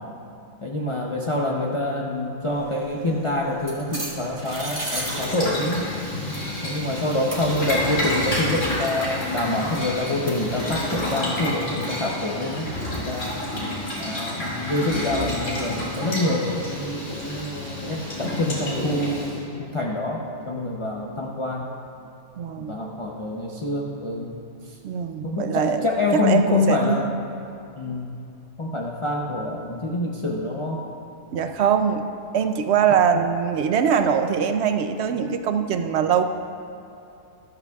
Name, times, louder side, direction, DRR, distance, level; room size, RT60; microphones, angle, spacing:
voice 1, 0.6-5.8 6.6-12.7 12.9-13.4 14.0-21.7 22.6-24.3 24.6-24.7 25.2-27.1 27.8-28.1 28.6-30.8, left 2 dB, 30° left, -3 dB, 0.6 m, -26 dB
sound 1, 2.4-14.0, right 1 dB, 25° right, 1.6 m, -39 dB
Boiling, 4.8-19.4, left 1 dB, 65° left, 3.1 m, -30 dB
voice 2, 22.4-22.8 24.8-25.8 26.2-27.1 31.3-32.0 32.3-36.2, right 7 dB, 65° right, 7 dB, 0.7 m, -22 dB
13.5 x 13.0 x 2.4 m, 2.6 s
omnidirectional pair, 1.4 m